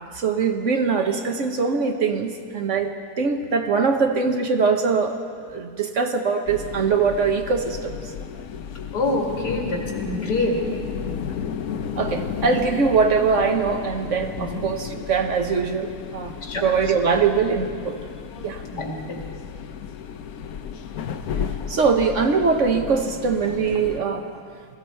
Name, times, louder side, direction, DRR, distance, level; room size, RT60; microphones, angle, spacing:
voice 1, 0.2-5.2 5.5-8.0 12.0-16.3 16.6-17.9 18.4-18.6 21.7-24.2, right 5 dB, 55° right, 5 dB, 1.1 m, -22 dB
sound 1, 6.5-24.0, left 7 dB, 70° left, 1.1 m, -33 dB
voice 2, 8.9-10.6 14.3-14.6 16.4-16.6 18.7-19.2, left 2 dB, 85° left, 0 dB, 2.6 m, -26 dB
20.5 x 14.0 x 4.4 m, 2.2 s
omnidirectional pair, 1.7 m